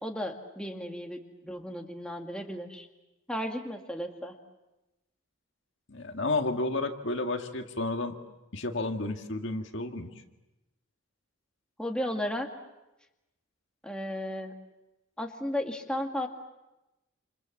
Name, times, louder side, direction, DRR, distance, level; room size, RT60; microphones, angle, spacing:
voice 1, 0.0-2.9 3.3-4.3 11.8-12.5 13.8-14.5 15.2-16.3, left 1 dB, 5° left, 2 dB, 2.1 m, -34 dB
voice 2, 5.9-8.2 8.5-10.1, left 2 dB, 60° left, 4 dB, 1.9 m, -31 dB
29.0 x 28.0 x 7.3 m, 0.99 s
head